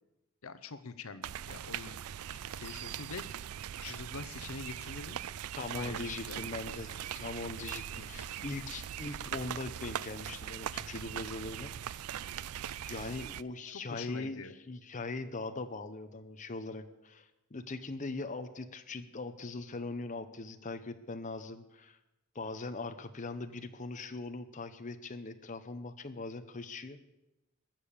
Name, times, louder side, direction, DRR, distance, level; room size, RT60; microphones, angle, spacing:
voice 1, 0.4-2.0 2.3-3.2 3.7-5.2 5.7-6.5 7.9-8.4 13.9-14.5, left 4 dB, 70° left, 13 dB, 0.8 m, -45 dB
sound 1, 1.2-13.4, right 10 dB, 90° right, 0.4 m, -41 dB
voice 2, 5.6-12.1 12.8-22.0 22.3-27.1, left 3 dB, 35° left, 8 dB, 0.8 m, -41 dB
21.0 x 7.3 x 6.7 m, 0.98 s
head